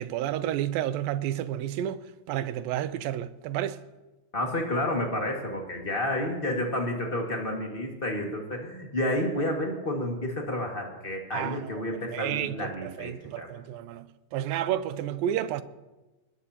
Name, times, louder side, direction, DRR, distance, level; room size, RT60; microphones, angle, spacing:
voice 1, 0.0-3.8 11.3-11.8 12.1-14.1 14.3-15.6, right 11 dB, 80° right, 2.3 m, -31 dB
voice 2, 4.3-13.5, left 1 dB, 35° left, 0.9 m, -30 dB
23.0 x 19.5 x 2.9 m
omnidirectional pair, 4.2 m